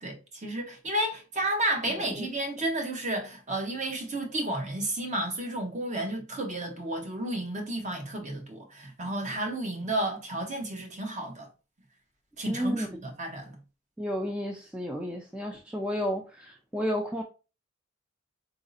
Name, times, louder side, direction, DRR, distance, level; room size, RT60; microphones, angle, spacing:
voice 1, 0.0-11.5 12.4-13.6, right 1 dB, 35° right, 0.8 m, -32 dB
voice 2, 12.5-12.9 14.0-17.2, equal, 5° right, 0.4 m, -32 dB
4.0 x 2.6 x 2.5 m
head